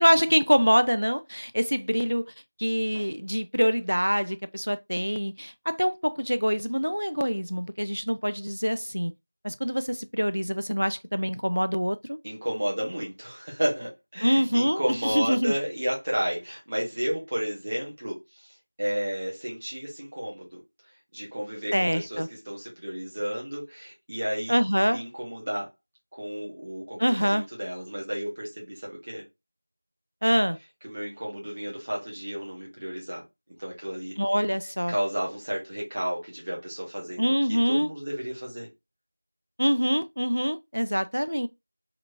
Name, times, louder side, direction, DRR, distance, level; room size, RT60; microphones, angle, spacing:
voice 1, 0.0-2.3 2.6-9.1 9.4-12.2 14.2-15.5 21.7-22.3 24.5-25.0 27.0-27.5 30.2-30.6 34.2-34.9 37.2-37.9 39.6-41.5, equal, 85° right, 0.4 m, -25 dB
voice 2, 12.2-20.6 21.1-24.6 24.9-25.7 26.1-29.2 30.8-33.2 33.6-34.2 34.9-38.7, equal, 15° right, 0.6 m, -32 dB
3.2 x 3.0 x 2.4 m
figure-of-eight pair, 180°, 0 cm